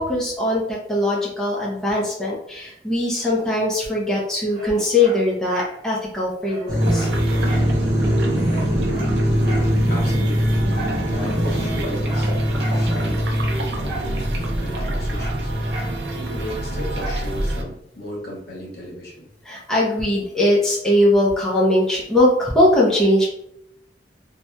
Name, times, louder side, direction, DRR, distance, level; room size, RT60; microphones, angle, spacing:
voice 1, 0.0-7.1 19.4-23.3, left 1 dB, 5° left, -6 dB, 0.6 m, -20 dB
Dog, 4.5-5.8 6.1-6.2 6.4-7.7 8.1-8.2 8.4-9.7 10.7-11.0 11.5-12.9 13.8-14.2 14.4-16.0 17.0-17.3 17.8-17.9, right 2 dB, 55° right, 1.2 m, -36 dB
sound 1, 6.7-17.6, equal, 25° right, 1.2 m, -23 dB
sound 2, 6.8-17.6, right 1 dB, 75° right, 0.5 m, -27 dB
voice 2, 9.9-19.3, left 1 dB, 65° left, -3 dB, 0.9 m, -36 dB
2.9 x 2.8 x 2.2 m, 0.74 s
head